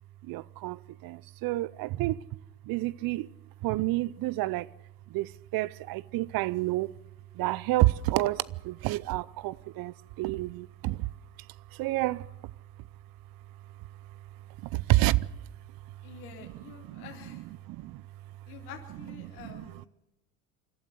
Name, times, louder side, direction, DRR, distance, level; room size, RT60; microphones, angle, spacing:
voice 1, 0.2-2.2 2.7-3.3 3.6-4.7 5.1-6.9 7.3-11.1 11.7-12.3 14.7-15.3 16.4-18.0 18.9-19.9, right 18 dB, 50° right, 0.7 m, -30 dB
voice 2, 16.0-17.4 18.5-19.9, left 7 dB, 75° left, 3.9 m, -47 dB
27.5 x 12.5 x 8.0 m
hypercardioid pair, 75°, 45 cm